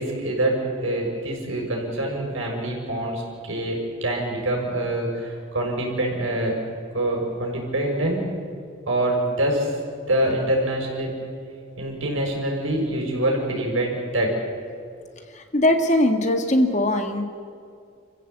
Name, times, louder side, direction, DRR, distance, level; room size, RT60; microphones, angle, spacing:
voice 1, 0.0-6.6 6.9-8.3 8.9-9.7 10.1-11.2 11.8-14.3, right 1 dB, 75° right, -1 dB, 6.3 m, -25 dB
voice 2, 15.3-17.3, left 1 dB, 35° left, 5 dB, 1.7 m, -20 dB
28.5 x 15.0 x 8.3 m, 2.3 s
head